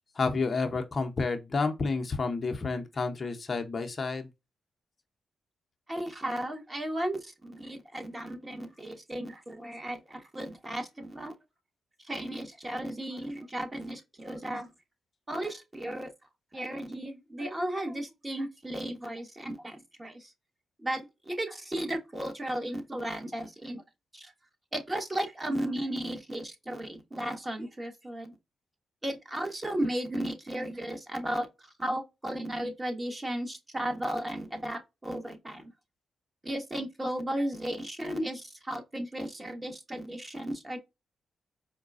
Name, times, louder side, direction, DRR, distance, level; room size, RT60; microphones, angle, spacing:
voice 1, 0.1-4.3, left 4 dB, 40° left, 0.7 m, -30 dB
voice 2, 5.9-11.4 12.1-14.7 15.3-16.1 16.5-20.3 20.8-23.8 24.1-24.3 24.7-28.3 29.0-35.7 36.4-40.8, right 1 dB, 20° right, 1.2 m, -35 dB
4.7 x 2.2 x 2.4 m
cardioid pair, 65°, 0 cm